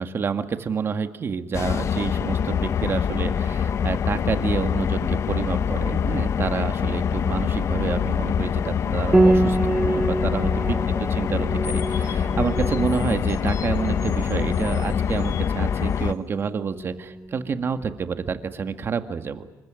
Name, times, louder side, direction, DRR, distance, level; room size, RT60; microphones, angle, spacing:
voice 1, 0.0-19.5, right 6 dB, 40° right, 9 dB, 1.9 m, -28 dB
sound 1, 1.5-16.1, left 7 dB, 50° left, 0.9 m, -24 dB
Piano, 9.1-18.5, right 2 dB, 10° right, 0.8 m, -27 dB
sound 2, 11.6-16.2, left 7 dB, 65° left, 4.0 m, -43 dB
28.5 x 24.5 x 6.4 m, 1.1 s
cardioid pair, 120°, 6 cm